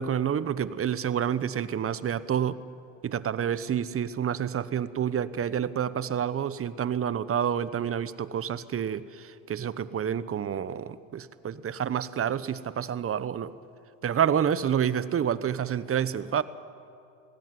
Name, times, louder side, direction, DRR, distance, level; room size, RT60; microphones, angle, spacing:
voice 1, 0.0-2.6 3.0-13.5 14.0-16.4, right 8 dB, 35° right, 16 dB, 0.9 m, -28 dB
20.0 x 16.5 x 9.7 m, 2.4 s
supercardioid pair, 90°, 41 cm